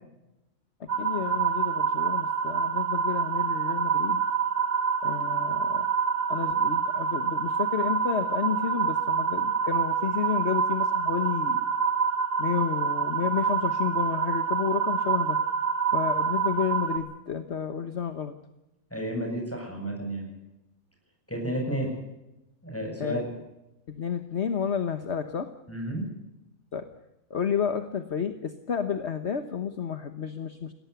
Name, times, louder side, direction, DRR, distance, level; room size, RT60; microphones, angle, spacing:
voice 1, 0.8-4.2 5.0-5.9 6.3-11.6 12.4-15.4 15.9-18.3 23.0-23.3 23.9-25.5 26.7-26.9 27.3-30.7, left 7 dB, 55° left, 9 dB, 1.4 m, -31 dB
sound 1, 0.9-17.0, right 6 dB, 45° right, 3.7 m, -27 dB
voice 2, 18.9-20.3 21.3-21.9 22.6-23.3 25.7-26.1, right 1 dB, 10° left, 2 dB, 8.0 m, -31 dB
21.5 x 17.5 x 8.2 m, 0.94 s
omnidirectional pair, 1.4 m